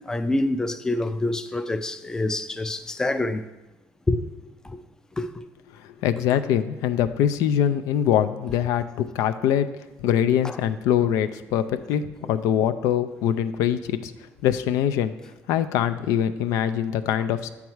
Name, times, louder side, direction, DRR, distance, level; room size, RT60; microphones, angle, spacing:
voice 1, 0.0-3.4 4.1-4.2 4.6-4.8 5.2-5.3 10.4-10.6, left 2 dB, 10° left, 0.4 m, -26 dB
voice 2, 6.0-8.8 9.1-9.7 10.0-14.1 14.4-15.1 15.5-17.5, left 10 dB, 75° left, 0.4 m, -23 dB
7.1 x 4.7 x 4.5 m
cardioid pair, 100°, 6 cm